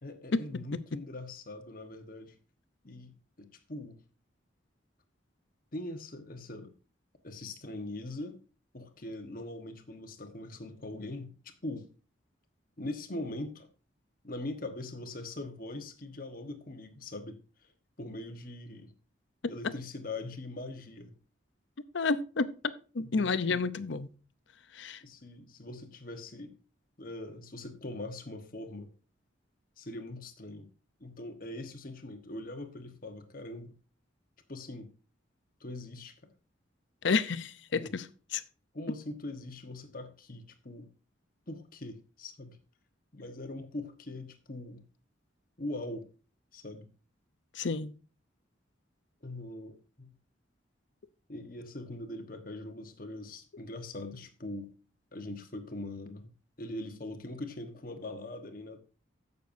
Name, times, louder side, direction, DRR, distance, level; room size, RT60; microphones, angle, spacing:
voice 1, 0.0-2.4 2.8-4.0 5.7-6.7 7.2-8.4 8.7-11.3 11.6-11.9 12.8-13.7 14.2-17.7 18.0-18.9 19.5-21.1 23.0-23.7 25.0-26.6 27.0-28.9 29.8-30.7 31.0-33.8 34.5-34.9 35.6-36.3 37.7-37.9 38.7-40.9 41.5-42.6 43.1-44.8 45.6-46.1 46.5-46.9 49.2-50.1 51.3-54.7 55.1-56.3 56.6-58.8, left 2 dB, 45° left, 1.2 m, -42 dB
voice 2, 21.9-22.5 22.9-24.1 24.7-25.0 37.0-38.0 38.3-38.4 47.5-47.9, left 4 dB, 70° left, 0.6 m, -30 dB
16.0 x 6.8 x 2.6 m
head